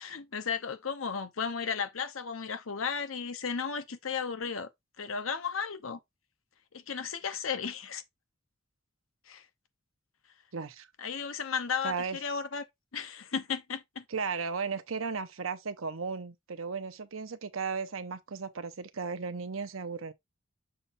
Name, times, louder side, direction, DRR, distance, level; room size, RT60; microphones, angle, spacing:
voice 1, 0.0-4.7 5.0-6.0 6.7-8.0 9.3-9.4 11.0-12.6 12.9-14.0, left 6 dB, 90° left, 0.9 m, -34 dB
voice 2, 10.5-10.9 11.8-12.4 14.1-20.1, right 5 dB, 90° right, 0.8 m, -35 dB
6.6 x 5.7 x 2.6 m
head